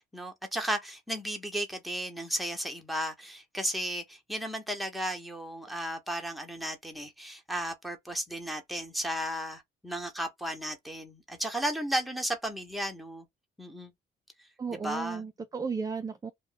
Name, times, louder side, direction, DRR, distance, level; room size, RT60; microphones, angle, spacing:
voice 1, 0.1-13.3 13.6-13.9 14.7-15.2, equal, ahead, 0.9 m, -34 dB
voice 2, 14.6-16.3, right 5 dB, 20° right, 0.3 m, -34 dB
2.5 x 2.1 x 3.8 m
cardioid pair, 90°, 20 cm